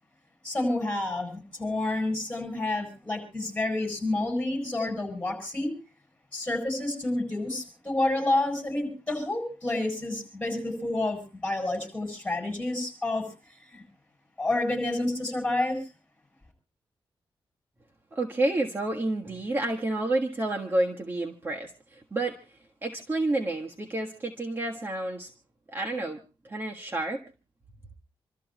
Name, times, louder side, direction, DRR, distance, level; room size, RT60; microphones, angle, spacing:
voice 1, 0.4-5.7 6.3-13.2 13.7-13.8 14.4-15.8, left 2 dB, 15° left, 7.7 m, -29 dB
voice 2, 18.1-25.3 25.7-26.2 26.4-27.2, right 2 dB, 25° right, 1.5 m, -30 dB
28.0 x 13.5 x 3.0 m
wide cardioid pair, 115°, 9 cm